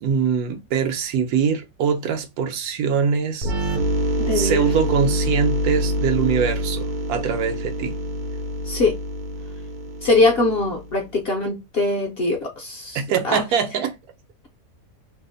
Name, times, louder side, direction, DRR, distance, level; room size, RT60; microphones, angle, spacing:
voice 1, 0.0-3.5 4.3-8.0 12.9-13.9, right 6 dB, 85° right, 1.1 m, -23 dB
sound 1, 3.4-11.0, equal, 60° right, 0.5 m, -26 dB
voice 2, 4.2-4.7 8.6-8.9 10.0-13.4, left 3 dB, 55° left, 0.7 m, -22 dB
2.8 x 2.0 x 3.8 m
omnidirectional pair, 1.5 m